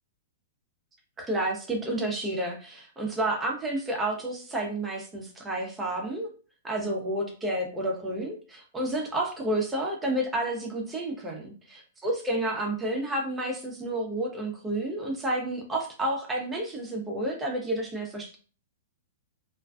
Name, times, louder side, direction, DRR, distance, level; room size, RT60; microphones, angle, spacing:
voice 1, 1.2-6.3 6.6-18.4, right 1 dB, 15° right, 0 dB, 0.6 m, -30 dB
2.4 x 2.3 x 2.3 m, 0.38 s
hypercardioid pair, 120°, 0 cm